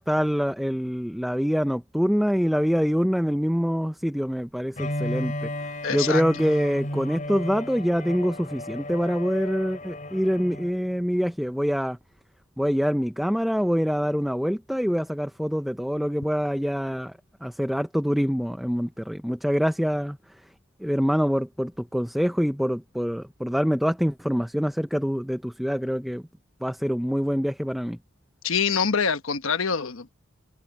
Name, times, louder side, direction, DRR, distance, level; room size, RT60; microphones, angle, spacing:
voice 1, 0.0-5.5 5.9-12.0 12.6-17.1 17.4-20.2 20.8-26.2 26.6-28.0, equal, ahead, 0.5 m, -25 dB
Bowed string instrument, 4.7-10.8, left 1 dB, 35° left, 4.0 m, -34 dB
voice 2, 5.8-6.2 28.4-30.1, left 6 dB, 70° left, 1.1 m, -25 dB
head